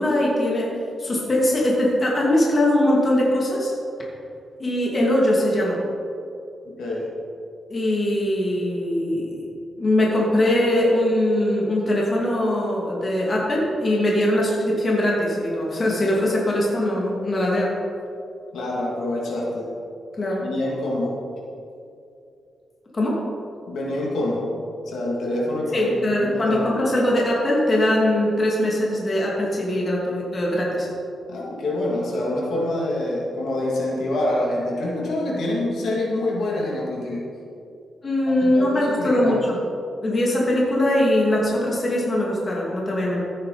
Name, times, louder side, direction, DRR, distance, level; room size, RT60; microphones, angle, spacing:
voice 1, 0.0-3.7 4.6-5.8 7.7-9.5 9.8-17.7 20.2-20.4 22.9-23.2 25.7-30.9 38.0-39.6 40.0-43.2, left 1 dB, 30° left, -4 dB, 2.6 m, -21 dB
voice 2, 6.8-7.1 18.5-19.7 20.4-21.1 23.7-24.5 24.9-26.6 31.3-37.2 38.5-39.3, left 1 dB, 75° left, -4 dB, 2.8 m, -26 dB
15.0 x 9.4 x 4.3 m, 2.6 s
wide cardioid pair, 140°, 0 cm